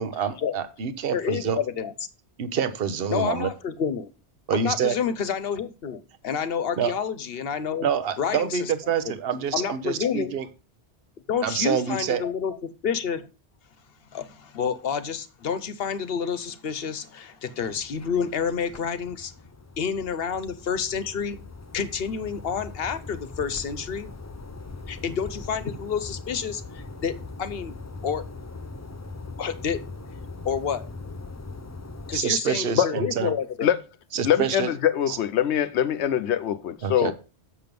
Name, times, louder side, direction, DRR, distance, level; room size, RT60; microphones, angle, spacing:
voice 1, 0.0-1.6 2.4-3.5 4.5-5.0 6.8-6.9 7.8-10.4 11.4-12.2 32.1-33.3 34.1-34.7 35.1-35.2 36.8-37.1, right 7 dB, 60° right, 1.1 m, -26 dB
voice 2, 1.1-1.9 3.1-4.1 4.5-7.9 8.2-9.2 9.5-10.4 11.3-13.2 14.1-19.3 19.8-21.4 21.7-24.1 24.9-27.1 27.4-27.7 28.0-28.2 29.4-29.8 30.4-30.9 32.1-33.7, left 7 dB, 60° left, 1.0 m, -29 dB
sound 1, 17.6-32.2, left 3 dB, 25° left, 0.3 m, -41 dB
voice 3, 34.2-37.1, left 10 dB, 85° left, 1.0 m, -23 dB
7.7 x 6.7 x 5.2 m
omnidirectional pair, 1.1 m